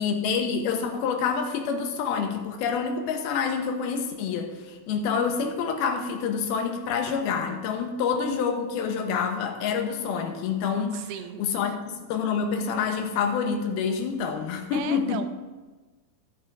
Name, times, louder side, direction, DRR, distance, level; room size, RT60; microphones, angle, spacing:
voice 1, 0.0-11.0 11.4-11.7 12.1-15.2, left 6 dB, 80° left, 4 dB, 3.0 m, -27 dB
voice 2, 10.9-11.8 14.7-15.3, right 9 dB, 90° right, 9 dB, 2.7 m, -37 dB
14.5 x 6.9 x 4.7 m, 1.3 s
omnidirectional pair, 4.3 m